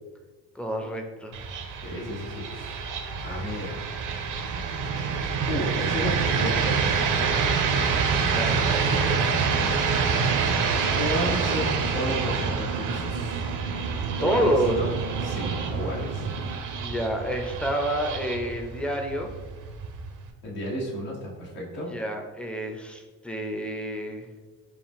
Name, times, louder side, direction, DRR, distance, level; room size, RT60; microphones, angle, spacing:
voice 1, 0.5-1.4 8.3-9.3 14.2-14.9 16.8-19.3 21.9-24.3, right 1 dB, ahead, 3 dB, 0.5 m, -28 dB
sound 1, 1.3-20.3, right 5 dB, 40° right, 0.6 m, -27 dB
voice 2, 1.8-2.9 3.2-3.7 5.5-7.2 10.9-13.4 14.2-14.9 15.2-16.3 20.4-21.9, equal, 85° left, -4 dB, 1.2 m, -32 dB
4.5 x 2.4 x 3.5 m, 1.3 s
supercardioid pair, 70°, 47 cm